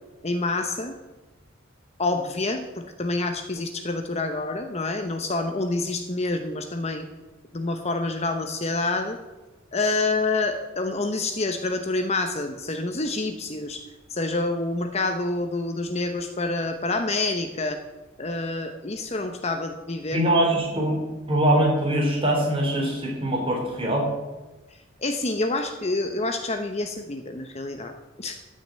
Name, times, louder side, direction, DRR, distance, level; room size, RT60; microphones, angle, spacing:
voice 1, 0.2-1.0 2.0-7.0 7.5-9.2 9.7-17.8 18.2-20.2 25.0-27.9 28.2-28.4, left 2 dB, 30° left, 6 dB, 0.8 m, -27 dB
voice 2, 20.1-21.0 21.3-24.1, right 1 dB, 25° right, 0 dB, 3.5 m, -22 dB
14.5 x 6.5 x 8.8 m, 1.2 s
head